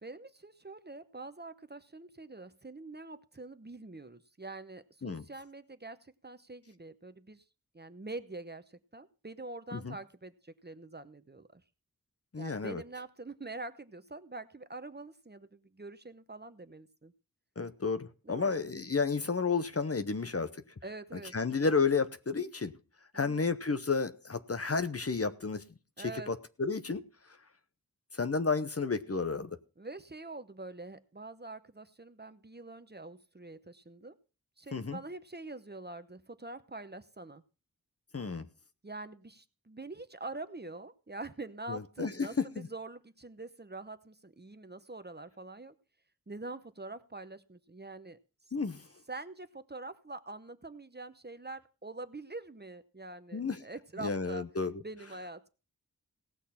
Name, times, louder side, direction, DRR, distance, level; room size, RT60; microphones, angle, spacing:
voice 1, 0.0-7.4 7.7-11.6 12.4-17.1 18.2-18.7 20.8-21.3 23.1-23.5 26.0-26.3 29.8-34.2 34.6-37.4 38.8-45.7 46.3-48.2 49.1-54.5 54.8-55.5, right 2 dB, 30° right, 0.8 m, -45 dB
voice 2, 12.3-12.8 17.6-20.6 21.3-22.7 23.1-25.7 26.0-27.0 28.1-29.5 34.7-35.0 38.1-38.5 41.7-42.7 48.5-48.8 53.3-53.6 54.0-54.7, left 4 dB, 40° left, 0.8 m, -31 dB
17.5 x 6.4 x 5.7 m
wide cardioid pair, 60°, 35 cm